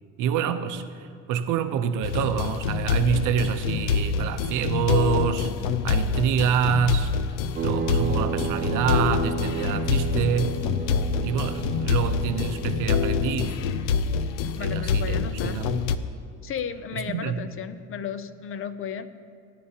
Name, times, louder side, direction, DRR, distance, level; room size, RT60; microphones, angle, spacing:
voice 1, 0.2-7.1 7.6-10.6 11.2-13.6 14.6-15.8 16.9-17.4, right 7 dB, 70° right, 8 dB, 0.8 m, -27 dB
sound 1, 2.0-16.0, left 6 dB, 85° left, 0.6 m, -26 dB
sound 2, 7.6-13.3, right 6 dB, 30° right, 0.8 m, -33 dB
Fireworks, 11.6-15.4, left 1 dB, 60° left, 1.9 m, -48 dB
voice 2, 14.6-15.7 16.4-19.1, left 8 dB, 40° left, 12 dB, 0.5 m, -34 dB
17.5 x 10.0 x 2.9 m, 2.3 s
cardioid pair, 125°, 33 cm